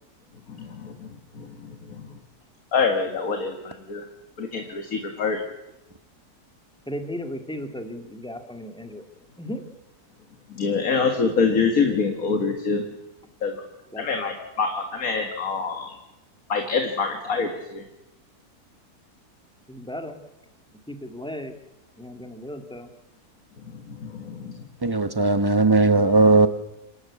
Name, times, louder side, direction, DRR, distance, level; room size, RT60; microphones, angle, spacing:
voice 1, 0.6-0.9 1.4-1.5 2.7-4.0 4.4-5.4 10.6-12.8 13.4-13.5 14.0-15.9 16.5-17.8 24.0-24.5, left 5 dB, 65° left, 5 dB, 2.1 m, -25 dB
voice 2, 6.9-9.0 9.4-9.6 13.9-14.3 19.7-20.2 20.9-21.5 22.0-22.9, left 1 dB, 5° left, 5 dB, 1.9 m, -35 dB
voice 3, 24.8-26.5, right 3 dB, 20° right, 10 dB, 0.7 m, -18 dB
28.0 x 12.0 x 8.5 m, 0.92 s
omnidirectional pair, 1.7 m